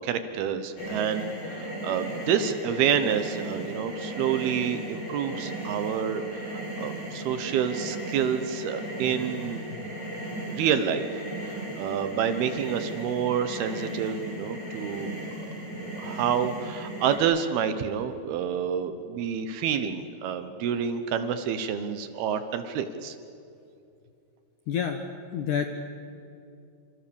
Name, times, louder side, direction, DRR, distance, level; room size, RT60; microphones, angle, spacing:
voice 1, 0.0-9.6 10.5-11.1 11.5-15.1 15.8-23.2, right 8 dB, 70° right, 10 dB, 2.8 m, -28 dB
sound 1, 0.8-17.2, right 1 dB, 25° left, 6.5 m, -36 dB
voice 2, 24.7-25.7, left 7 dB, 70° left, 6 dB, 2.0 m, -29 dB
27.0 x 26.5 x 7.0 m, 2.6 s
omnidirectional pair, 5.0 m